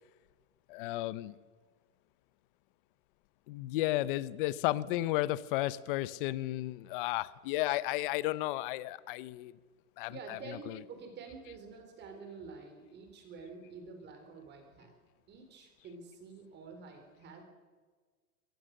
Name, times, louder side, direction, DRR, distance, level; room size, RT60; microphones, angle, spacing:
voice 1, 0.7-1.3 3.5-9.5 10.0-10.8, left 16 dB, 35° left, 18 dB, 0.8 m, -33 dB
voice 2, 10.1-14.9 15.3-17.4, right 4 dB, 25° right, 5 dB, 4.0 m, -48 dB
22.0 x 19.0 x 6.6 m, 1.4 s
hypercardioid pair, 145°, 45 cm